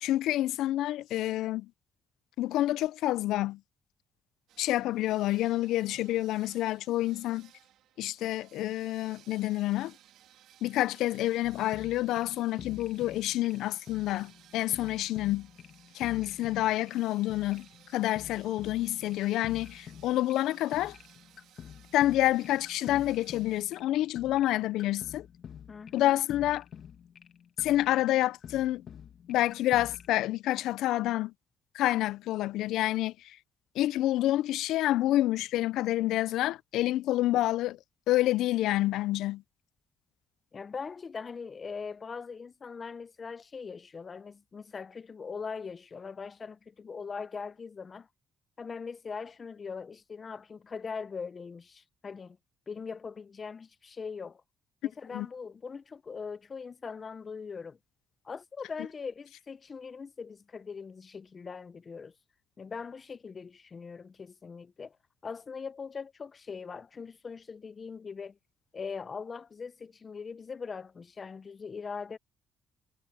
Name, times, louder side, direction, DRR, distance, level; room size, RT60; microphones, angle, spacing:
voice 1, 0.0-1.7 2.4-3.6 4.6-7.5 8.0-9.9 10.6-15.5 15.9-17.7 17.9-21.0 21.9-25.3 25.9-26.6 27.6-28.8 29.3-31.3 31.7-33.4 33.8-37.8 38.1-39.4 55.1-55.3, left 15 dB, 90° left, 0.4 m, -28 dB
sound 1, 4.5-23.6, right 12 dB, 85° right, 2.8 m, -59 dB
sound 2, 11.4-30.1, left 8 dB, 60° left, 1.5 m, -49 dB
voice 2, 25.7-26.1 40.5-48.1 48.6-52.4 52.7-54.4 54.8-57.8 58.2-62.1 62.6-65.0 65.2-68.4 68.7-72.2, left 5 dB, 40° left, 0.6 m, -41 dB
cardioid pair, 90°, 0 cm